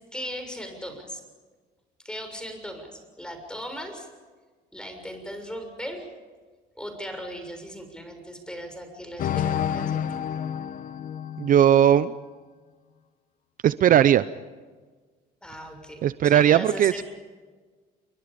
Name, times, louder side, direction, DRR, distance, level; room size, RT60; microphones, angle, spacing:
voice 1, 0.1-1.2 2.0-4.1 4.7-6.0 6.8-10.0 15.4-17.0, equal, 5° left, 5 dB, 6.7 m, -38 dB
sound 1, 9.2-12.0, left 9 dB, 55° left, 1.1 m, -29 dB
voice 2, 11.4-12.1 13.6-14.2 16.0-17.0, right 10 dB, 55° right, 14 dB, 0.7 m, -18 dB
29.5 x 23.5 x 5.2 m, 1.4 s
cardioid pair, 110°, 17 cm